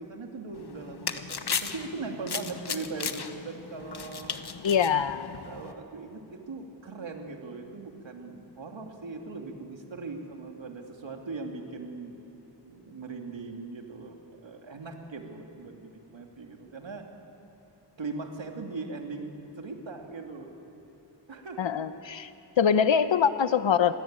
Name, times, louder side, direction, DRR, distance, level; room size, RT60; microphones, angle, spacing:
voice 1, 0.0-4.4 5.4-12.2 12.6-17.1 18.0-20.5 21.3-21.8, right 3 dB, 85° right, 3 dB, 2.8 m, -40 dB
sound 1, 0.5-5.7, left 6 dB, 60° left, 1.3 m, -36 dB
voice 2, 4.6-5.3 21.6-22.3 22.6-23.9, left 7 dB, 90° left, 11 dB, 0.9 m, -24 dB
29.0 x 22.0 x 9.0 m, 2.8 s
wide cardioid pair, 105°, 44 cm